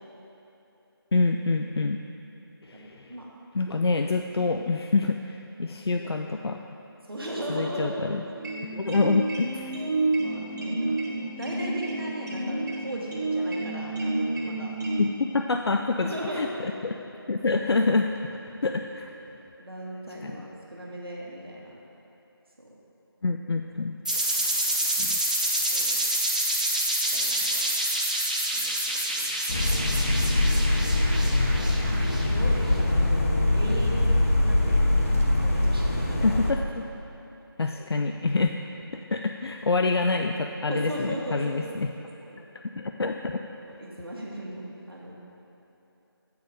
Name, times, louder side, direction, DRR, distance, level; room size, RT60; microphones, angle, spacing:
voice 1, 1.1-2.0 2.6-3.1 3.5-6.6 7.5-8.2 8.7-9.8 15.0-17.0 17.3-18.2 18.6-19.1 20.2-20.3 23.2-23.9 25.0-25.2 36.2-36.8 37.6-41.9 42.8-43.4, left 3 dB, 85° left, 4 dB, 0.4 m, -26 dB
voice 2, 2.7-3.3 7.1-7.9 8.8-8.9 10.2-14.7 16.0-16.5 19.6-21.8 22.6-22.7 24.1-24.2 25.7-25.9 27.1-27.6 28.5-28.7 29.1-29.7 31.0-31.7 32.1-33.3 33.5-34.0 34.4-34.8 35.4-36.4 40.7-41.6 42.3-42.4 43.6-45.1, right 1 dB, 70° right, -4 dB, 1.5 m, -37 dB
sound 1, 8.4-15.0, right 2 dB, 45° right, 1.6 m, -29 dB
sound 2, 24.0-32.6, right 1 dB, 20° right, 0.4 m, -27 dB
sound 3, 29.5-36.5, left 1 dB, 35° left, 0.6 m, -23 dB
8.3 x 4.6 x 4.9 m, 2.9 s
figure-of-eight pair, 165°, 13 cm